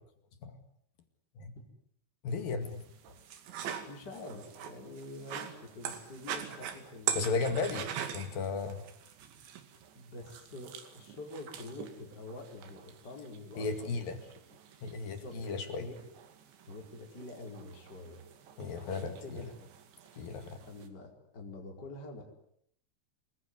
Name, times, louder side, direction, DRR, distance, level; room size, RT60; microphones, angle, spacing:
voice 1, 2.2-2.8 7.2-7.9 8.1-8.8 13.6-14.2 14.8-15.9 18.6-19.5 20.2-20.6, left 4 dB, 55° left, 8 dB, 3.5 m, -35 dB
sound 1, 2.6-20.9, right 9 dB, 70° right, 4.5 m, -44 dB
voice 2, 3.9-7.6 9.9-14.3 15.0-15.3 15.8-16.0 16.7-18.2 18.7-19.7 20.6-22.2, left 2 dB, 20° left, 1 dB, 4.8 m, -46 dB
28.5 x 20.5 x 9.8 m, 0.70 s
omnidirectional pair, 5.7 m